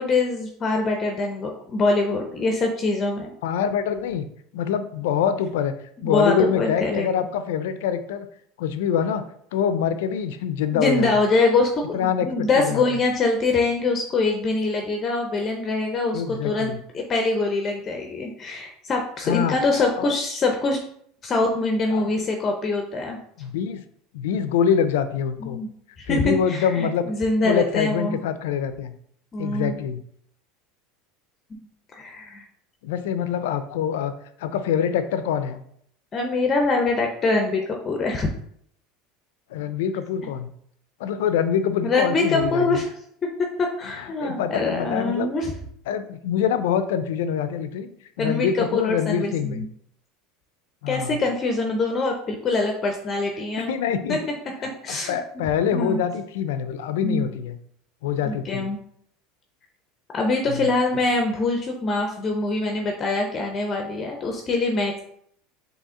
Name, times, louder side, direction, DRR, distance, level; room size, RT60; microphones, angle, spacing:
voice 1, 0.0-3.3 6.0-7.1 10.7-20.8 21.2-23.2 25.4-25.7 26.0-28.2 29.3-29.8 31.9-32.4 36.1-38.3 41.8-42.9 43.6-45.5 48.2-49.7 50.9-53.7 54.1-54.2 54.6-55.2 55.7-56.0 57.0-57.3 58.2-58.8 60.1-65.0, left 3 dB, 30° left, 2 dB, 0.5 m, -24 dB
voice 2, 3.4-4.3 4.5-5.7 6.0-8.3 8.6-9.2 9.5-11.1 11.9-12.8 16.1-16.8 19.3-19.6 20.0-20.1 21.9-22.3 23.4-23.8 24.1-25.6 26.1-27.0 27.4-28.9 29.4-30.0 32.8-34.1 34.4-35.6 39.5-40.5 41.0-42.8 44.0-45.3 45.9-47.9 48.2-49.7 50.8-51.2 53.7-54.2 54.9-57.6 58.0-58.7 60.5-60.7, left 8 dB, 85° left, 10 dB, 0.4 m, -25 dB
4.1 x 2.8 x 3.6 m, 0.67 s
supercardioid pair, 120°, 0 cm